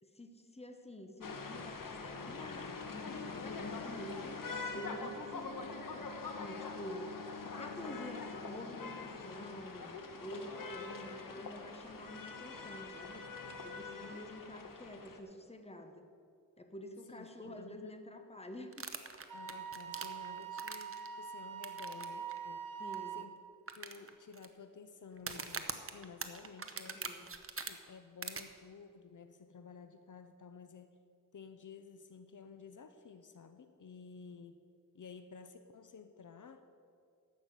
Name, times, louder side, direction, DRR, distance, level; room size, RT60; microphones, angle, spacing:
voice 1, 0.0-4.4 4.7-9.9 10.2-13.2 13.6-16.1 16.6-18.9 22.8-23.3 26.9-27.3, equal, 20° left, 6 dB, 1.2 m, -48 dB
sound 1, 1.2-15.2, left 4 dB, 85° left, 1.2 m, -44 dB
voice 2, 13.4-14.2 17.1-17.9 19.3-22.8 23.1-23.3 23.7-27.0 27.7-31.0 31.3-34.6 34.9-36.7, left 5 dB, 70° left, 8 dB, 0.7 m, -53 dB
sound 2, 18.7-21.1 21.6-22.0 22.3-22.4 22.9-23.0 23.7-24.5 25.2-27.7 28.2-28.4, right 5 dB, 45° right, 0.9 m, -42 dB
Wind instrument woodwind instrument, 19.3-23.3, right 7 dB, 90° right, 0.8 m, -44 dB
13.5 x 6.1 x 8.2 m, 2.3 s
wide cardioid pair, 85°, 32 cm